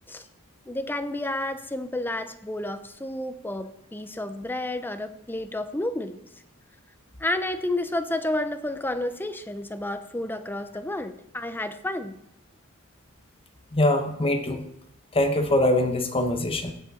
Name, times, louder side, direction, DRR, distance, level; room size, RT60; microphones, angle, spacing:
voice 1, 0.7-6.2 7.2-12.1, left 1 dB, 10° left, 10 dB, 0.6 m, -31 dB
voice 2, 13.7-14.6 15.1-16.7, left 1 dB, 25° left, 5 dB, 1.0 m, -23 dB
16.5 x 6.1 x 4.2 m, 0.79 s
head